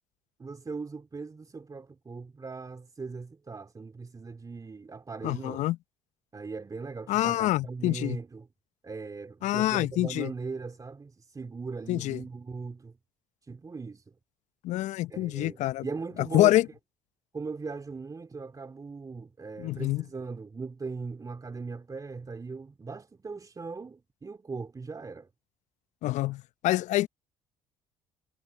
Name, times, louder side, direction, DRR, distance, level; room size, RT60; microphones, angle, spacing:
voice 1, 0.4-5.6 6.3-8.5 8.8-12.9 13.5-14.0 15.1-16.6 17.3-25.3, right 4 dB, 25° right, 2.6 m, -39 dB
voice 2, 5.2-5.8 7.1-8.2 9.4-10.3 11.9-12.2 14.6-15.8 16.2-16.7 19.6-20.0 26.0-27.1, left 16 dB, 65° left, 0.8 m, -26 dB
hypercardioid pair, 60°, 13 cm